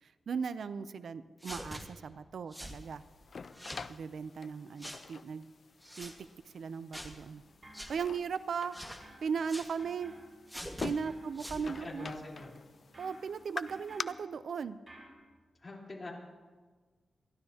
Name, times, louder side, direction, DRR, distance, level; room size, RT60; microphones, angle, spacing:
voice 1, 0.3-3.0 3.9-5.5 6.0-6.1 6.5-7.4 7.9-8.8 9.2-10.1 10.8-12.1 13.0-14.8, right 6 dB, 70° right, 13 dB, 0.5 m, -37 dB
sound 1, 1.4-1.8 2.5-2.8 3.5-3.9 4.8-5.0 5.8-6.2 6.9-7.2 7.7-7.9 8.7-9.0 9.5-9.7 10.5-10.9 11.4-11.7, equal, 5° right, 1.6 m, -44 dB
sound 2, 2.6-14.0, left 5 dB, 50° left, 0.4 m, -47 dB
sound 3, 7.3-8.7 9.0-15.1, right 1 dB, 35° right, 5.5 m, -57 dB
voice 2, 11.5-12.5 15.6-16.1, left 2 dB, 30° left, -3 dB, 3.6 m, -44 dB
28.0 x 12.0 x 2.8 m, 1.4 s
wide cardioid pair, 110°, 0 cm